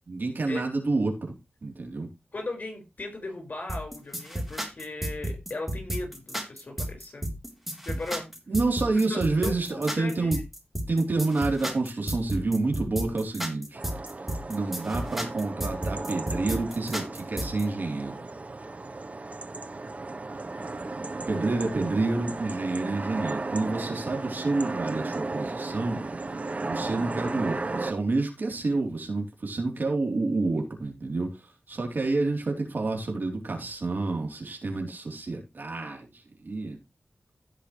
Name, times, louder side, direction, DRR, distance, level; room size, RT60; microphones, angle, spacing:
voice 1, 0.1-1.3 1.6-2.1 8.5-10.4 10.9-13.8 14.5-18.2 21.3-26.0 26.6-31.3 31.7-36.1 36.4-36.8, right 3 dB, 75° right, 3.7 m, -28 dB
voice 2, 2.3-7.3 7.8-8.3 9.1-10.3, left 2 dB, 60° left, 5.5 m, -37 dB
sound 1, 3.7-17.6, right 1 dB, 5° right, 3.7 m, -32 dB
sound 2, 13.7-27.9, right 3 dB, 45° right, 1.1 m, -35 dB
16.5 x 5.8 x 3.3 m
wide cardioid pair, 55°, 3 cm